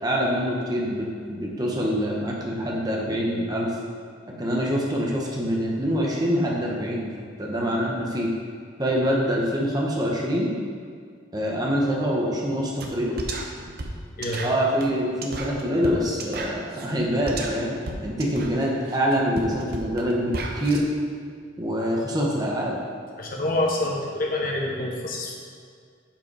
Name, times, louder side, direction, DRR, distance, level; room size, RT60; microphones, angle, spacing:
voice 1, 0.0-3.7 4.4-7.1 7.4-8.3 8.8-10.5 11.3-13.2 14.4-20.9 21.6-22.8, equal, 20° right, -3 dB, 1.1 m, -25 dB
sound 1, 12.8-12.9 13.2-20.8, right 2 dB, 55° right, 0.8 m, -34 dB
voice 2, 14.2-14.5 23.2-25.4, left 1 dB, 50° left, -1 dB, 1.1 m, -27 dB
7.3 x 5.3 x 4.8 m, 2.1 s
head